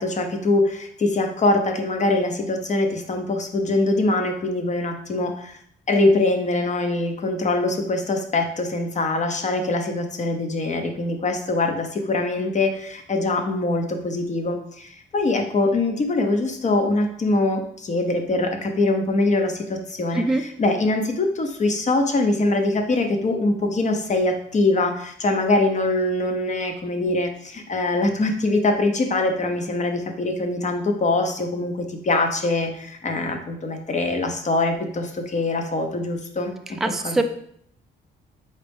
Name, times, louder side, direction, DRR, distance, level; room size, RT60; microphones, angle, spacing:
voice 1, 0.0-5.6 5.9-37.2, left 2 dB, 35° left, 5 dB, 0.7 m, -23 dB
voice 2, 20.1-20.5 36.8-37.2, right 2 dB, ahead, 6 dB, 0.3 m, -23 dB
4.2 x 3.0 x 3.5 m, 0.66 s
cardioid pair, 90°, 20 cm